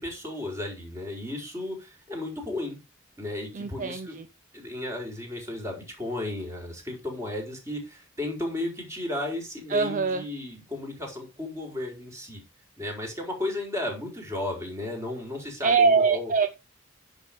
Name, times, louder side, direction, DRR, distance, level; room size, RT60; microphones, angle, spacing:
voice 1, 0.0-2.8 3.2-4.2 4.5-12.4 12.8-16.3, left 1 dB, 15° right, 1 dB, 4.4 m, -34 dB
voice 2, 3.5-4.2 9.7-10.2 15.6-16.5, right 5 dB, 40° right, 10 dB, 0.6 m, -23 dB
10.0 x 6.2 x 5.2 m, 0.28 s
head